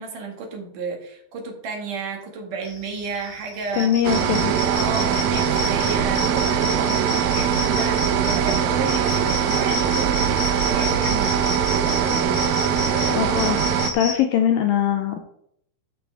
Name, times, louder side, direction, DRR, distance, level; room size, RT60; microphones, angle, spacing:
voice 1, 0.0-3.9 4.7-11.5, right 4 dB, 55° right, 2 dB, 3.2 m, -32 dB
sound 1, 2.6-14.1, left 3 dB, 30° left, 4.4 m, -31 dB
voice 2, 3.8-4.5 13.1-13.6 13.9-15.2, left 10 dB, 75° left, 5 dB, 2.1 m, -21 dB
sound 2, 4.0-13.9, right 8 dB, 70° right, 2.4 m, -22 dB
13.5 x 7.6 x 3.5 m, 0.70 s
omnidirectional pair, 4.8 m